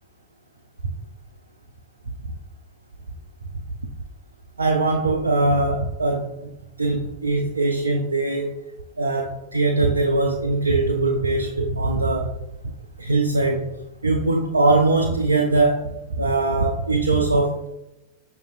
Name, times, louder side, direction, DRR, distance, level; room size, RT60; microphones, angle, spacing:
voice 1, 4.6-6.5 6.8-8.6 9.0-12.4 13.0-13.7 14.0-17.7, right 2 dB, 75° right, 0.3 m, -21 dB
6.3 x 2.5 x 2.5 m
figure-of-eight pair, 90°, 0 cm